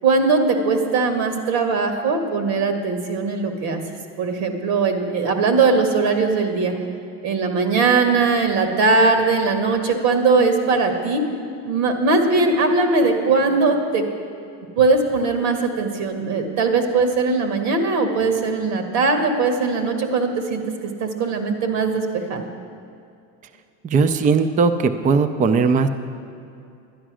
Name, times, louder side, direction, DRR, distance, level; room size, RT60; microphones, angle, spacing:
voice 1, 0.0-3.8 4.2-6.7 7.2-11.2 11.6-14.0 14.7-20.6 21.0-22.4, right 4 dB, 70° right, 5 dB, 1.8 m, -20 dB
voice 2, 23.8-25.9, right 4 dB, 20° right, 9 dB, 0.4 m, -18 dB
11.5 x 10.0 x 6.2 m, 2.5 s
supercardioid pair, 130°, 39 cm